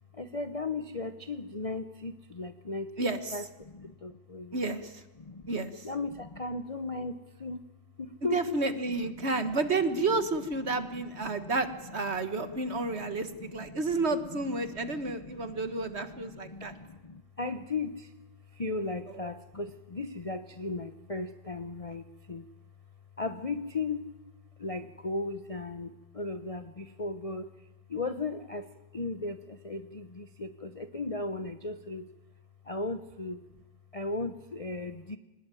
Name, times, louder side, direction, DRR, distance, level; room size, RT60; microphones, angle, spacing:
voice 1, 0.1-3.0 3.3-4.6 5.2-5.5 5.8-7.7 8.0-9.5 10.7-11.6 12.1-18.1 18.5-22.4 23.2-24.2 24.6-27.5 27.9-28.7 28.9-32.1 32.6-33.4 33.9-35.2, left 3 dB, 55° left, 8 dB, 0.4 m, -37 dB
voice 2, 3.0-3.4 4.5-5.0 5.5-5.8 8.3-16.7 19.1-19.3, right 3 dB, 35° right, 10 dB, 1.5 m, -31 dB
25.5 x 19.5 x 9.1 m, 1.1 s
omnidirectional pair, 2.1 m